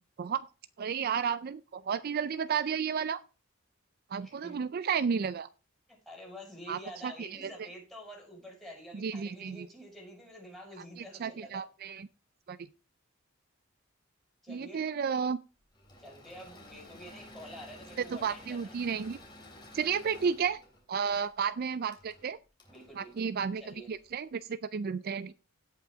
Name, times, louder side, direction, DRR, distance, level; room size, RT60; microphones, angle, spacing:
voice 1, 0.8-3.2 4.1-5.5 6.7-7.5 9.0-9.7 11.2-12.1 12.5-12.6 14.5-15.4 18.1-19.2 19.7-20.6 20.9-22.4 23.0-23.6 23.9-25.3, right 6 dB, 45° right, 15 dB, 0.4 m, -32 dB
voice 2, 4.2-4.7 5.9-11.6 14.4-14.8 16.0-18.8 21.0-21.2 22.7-23.3 23.6-23.9, equal, ahead, -1 dB, 5.6 m, -48 dB
Engine / Mechanisms, 15.7-24.1, left 1 dB, 20° left, 3.2 m, -53 dB
17.0 x 5.8 x 3.5 m, 0.32 s
head